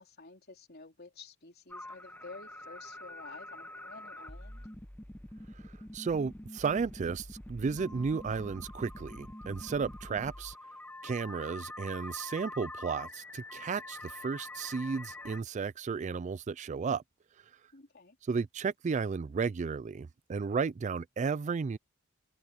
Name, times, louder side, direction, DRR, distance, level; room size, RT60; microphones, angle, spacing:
voice 1, 0.0-4.7 17.7-18.2, left 3 dB, 50° left, 3.9 m, -51 dB
sound 1, 1.7-15.4, left 1 dB, 10° left, 1.0 m, -45 dB
voice 2, 5.5-10.6 11.0-17.0 18.3-21.8, right 5 dB, 35° right, 0.3 m, -33 dB
head